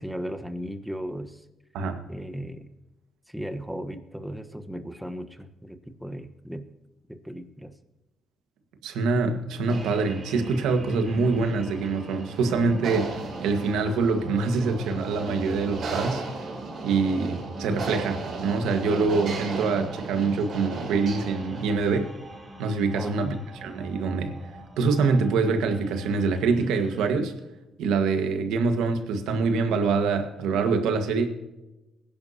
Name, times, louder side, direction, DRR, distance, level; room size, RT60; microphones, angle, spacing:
voice 1, 0.0-1.4 2.1-2.7 3.3-6.6 7.1-7.7 22.9-23.4, equal, ahead, 1.3 m, -36 dB
voice 2, 8.8-16.2 16.8-22.1 22.6-23.3 23.6-24.4 24.8-27.3 27.8-31.3, right 4 dB, 90° right, 1.7 m, -25 dB
sound 1, 9.7-27.1, right 2 dB, 25° right, 2.5 m, -41 dB
sound 2, 9.7-22.0, right 4 dB, 60° right, 4.9 m, -37 dB
21.0 x 10.5 x 2.9 m
cardioid pair, 90°, 0 cm